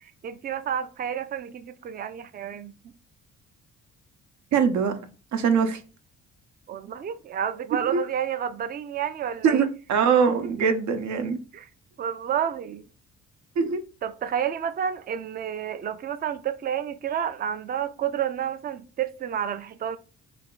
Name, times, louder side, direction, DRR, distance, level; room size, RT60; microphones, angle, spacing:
voice 1, 0.0-2.7 6.7-9.6 10.4-10.5 11.5-11.7 12.0-12.9 14.0-20.0, right 9 dB, 30° right, 0.4 m, -30 dB
voice 2, 4.5-5.1 5.3-5.8 7.7-8.0 9.4-11.4 13.6-13.8, right 6 dB, 70° right, 0.7 m, -22 dB
3.4 x 2.4 x 3.8 m
cardioid pair, 90°, 30 cm